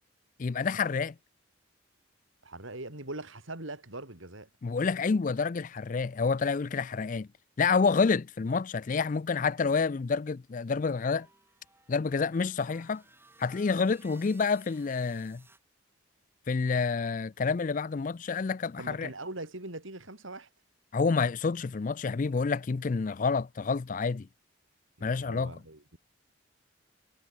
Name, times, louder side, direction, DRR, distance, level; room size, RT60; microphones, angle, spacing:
voice 1, 0.4-1.1 4.6-7.3 7.6-11.3 11.9-13.0 13.4-15.4 16.5-19.1 20.9-24.3 25.0-25.5, left 4 dB, 40° left, 0.4 m, -28 dB
voice 2, 2.4-4.5 18.8-20.5 25.0-26.0, right 2 dB, 75° right, 4.5 m, -41 dB
sound 1, 10.8-15.6, right 3 dB, 10° right, 4.0 m, -60 dB
head